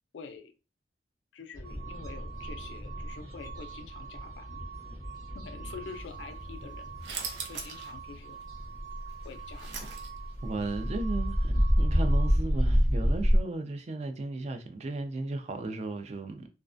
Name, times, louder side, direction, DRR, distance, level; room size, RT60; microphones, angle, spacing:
voice 1, 0.1-0.5 1.3-4.6 5.3-8.4 9.2-10.0, left 5 dB, 80° left, 0.4 m, -47 dB
sound 1, 1.5-13.4, equal, 20° right, 0.7 m, -30 dB
sound 2, 1.6-12.4, right 8 dB, 55° right, 0.8 m, -47 dB
sound 3, 7.0-7.9 8.3-8.4 9.1-10.4, right 5 dB, 85° right, 0.5 m, -39 dB
voice 2, 10.4-16.5, right 2 dB, 35° right, 0.3 m, -35 dB
2.3 x 2.1 x 2.5 m
head